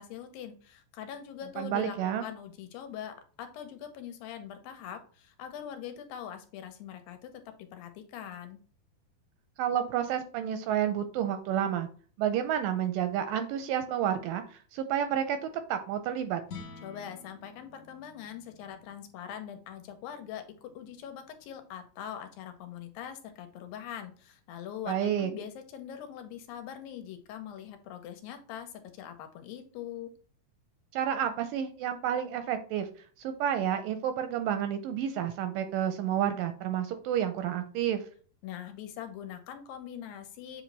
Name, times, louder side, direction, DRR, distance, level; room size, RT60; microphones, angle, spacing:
voice 1, 0.0-7.4 7.7-8.6 16.8-30.1 38.4-40.6, left 9 dB, 80° left, 7 dB, 2.5 m, -42 dB
voice 2, 1.6-2.3 9.6-11.9 12.2-16.4 24.9-25.3 30.9-32.9 33.2-38.0, right 10 dB, 80° right, 9 dB, 2.1 m, -30 dB
sound 1, 16.4-22.8, left 4 dB, 60° left, 2.4 m, -52 dB
7.7 x 3.1 x 4.0 m, 0.41 s
omnidirectional pair, 4.3 m